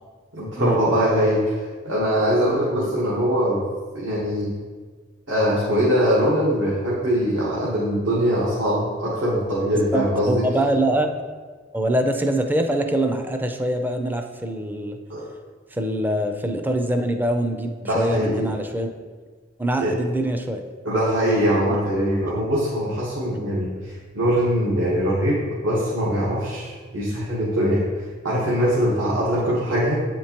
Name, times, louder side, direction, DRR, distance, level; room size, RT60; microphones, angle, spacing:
voice 1, 0.3-1.6 1.8-3.6 3.9-4.5 5.3-10.4 15.1-15.3 17.8-18.5 19.8-19.9 20.8-27.8 28.2-29.9, equal, 80° right, -7 dB, 1.3 m, -22 dB
voice 2, 9.9-11.1 11.7-15.0 15.7-18.9 19.6-20.6 21.7-21.8 23.3-23.4 29.3-29.4, right 1 dB, 10° right, 5 dB, 0.4 m, -24 dB
8.1 x 4.4 x 2.9 m, 1.5 s
head